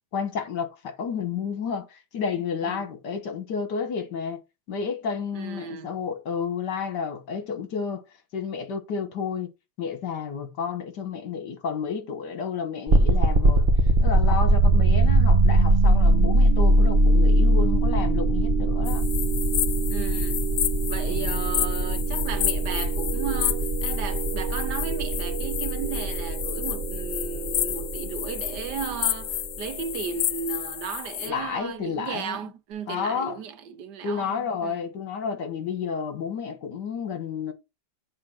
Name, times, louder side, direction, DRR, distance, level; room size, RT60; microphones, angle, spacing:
voice 1, 0.1-4.4 4.7-8.0 8.3-9.5 9.8-13.7 14.0-19.1 21.1-21.4 31.2-32.4 32.9-33.4 34.0-37.5, left 6 dB, 65° left, 1.9 m, -31 dB
voice 2, 5.3-5.9 19.9-20.4 20.9-34.8, right 7 dB, 70° right, 1.3 m, -35 dB
sound 1, 12.9-29.8, right 1 dB, 35° right, 1.0 m, -22 dB
sound 2, 18.8-31.3, left 14 dB, 90° left, 0.7 m, -31 dB
7.6 x 3.8 x 5.9 m
omnidirectional pair, 2.0 m